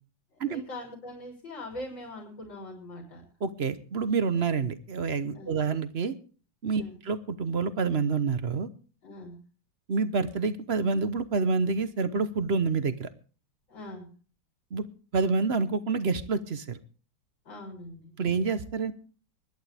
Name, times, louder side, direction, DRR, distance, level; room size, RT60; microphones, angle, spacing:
voice 1, 0.4-3.2 5.3-5.6 6.8-7.0 9.0-9.4 13.7-14.1 17.5-18.1, left 1 dB, 70° left, -1 dB, 7.1 m, -42 dB
voice 2, 3.4-6.1 6.6-8.7 9.9-13.1 14.7-14.9 15.1-16.8 18.2-18.9, right 4 dB, 45° right, 12 dB, 0.9 m, -28 dB
24.5 x 11.5 x 3.4 m, 0.39 s
omnidirectional pair, 2.1 m